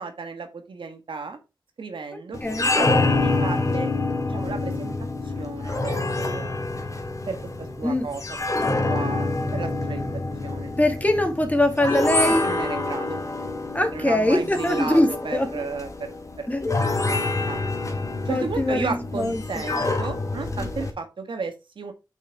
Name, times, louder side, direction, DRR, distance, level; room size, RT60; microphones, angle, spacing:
voice 1, 0.0-1.4 1.8-3.9 4.3-4.9 5.3-6.5 7.3-8.2 8.8-10.1 10.4-10.7 12.4-13.2 13.9-16.1 16.4-16.5 17.0-17.6 18.2-21.9, right 4 dB, 85° right, 1.6 m, -34 dB
sound 1, 2.3-20.9, left 2 dB, 40° left, 1.9 m, -27 dB
voice 2, 10.8-12.5 13.7-15.6 16.5-16.7 18.3-19.4 20.6-20.7, left 1 dB, 20° left, 1.9 m, -22 dB
6.3 x 5.6 x 4.7 m
wide cardioid pair, 75°, 8 cm